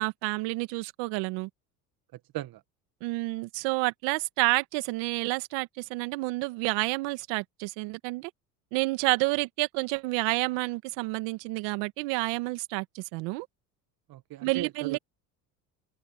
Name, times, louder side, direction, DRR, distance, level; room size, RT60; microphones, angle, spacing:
voice 1, 0.0-1.5 3.0-8.3 8.7-13.5 14.4-15.0, right 24 dB, 75° right, 1.9 m, -29 dB
voice 2, 14.1-15.0, right 15 dB, 55° right, 1.5 m, -37 dB
hypercardioid pair, 75°, 44 cm